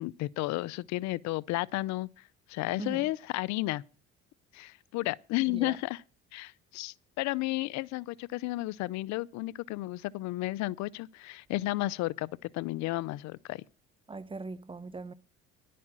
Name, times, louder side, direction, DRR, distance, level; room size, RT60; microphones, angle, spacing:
voice 1, 0.0-2.1 2.5-3.8 4.5-6.0 6.3-13.6, left 18 dB, 70° left, 0.5 m, -33 dB
voice 2, 2.8-3.1 5.5-5.8 14.1-15.1, right 3 dB, 20° right, 0.8 m, -40 dB
11.0 x 8.6 x 7.3 m
supercardioid pair, 85°, 29 cm